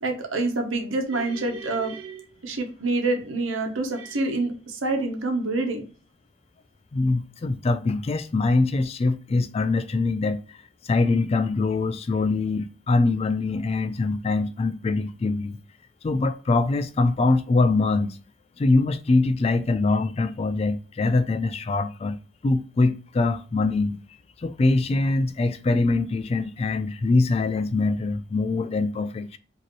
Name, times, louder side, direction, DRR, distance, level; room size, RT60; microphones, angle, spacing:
voice 1, 0.0-5.9, right 2 dB, 80° right, 1.1 m, -27 dB
voice 2, 6.9-10.6 10.8-15.6 16.0-18.2 18.6-22.2 22.4-24.0 24.4-29.4, left 3 dB, 30° left, 0.3 m, -23 dB
5.0 x 2.8 x 3.1 m
head